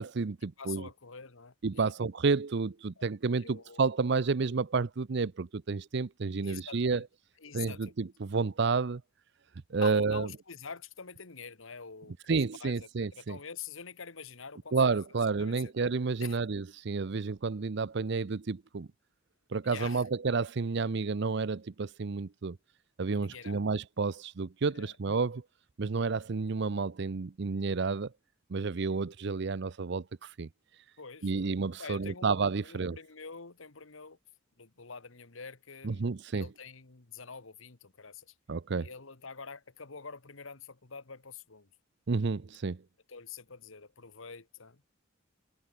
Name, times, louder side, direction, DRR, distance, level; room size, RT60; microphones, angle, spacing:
voice 1, 0.0-0.9 1.6-7.0 7.5-9.0 9.7-10.3 12.3-13.4 14.7-18.9 19.5-22.6 23.0-25.4 25.8-28.1 28.5-30.5 31.2-33.0 35.8-36.5 38.5-38.9 42.1-42.8, right 4 dB, 55° right, 0.6 m, -30 dB
voice 2, 0.6-1.9 3.0-3.1 3.4-3.8 6.4-7.1 7.4-7.9 9.8-15.0 15.4-15.7 16.2-16.4 19.6-20.0 23.1-23.6 24.7-25.0 31.0-31.5 31.8-32.3 32.6-34.2 34.6-38.3 38.8-41.7 43.1-44.8, left 5 dB, 75° left, 1.6 m, -46 dB
head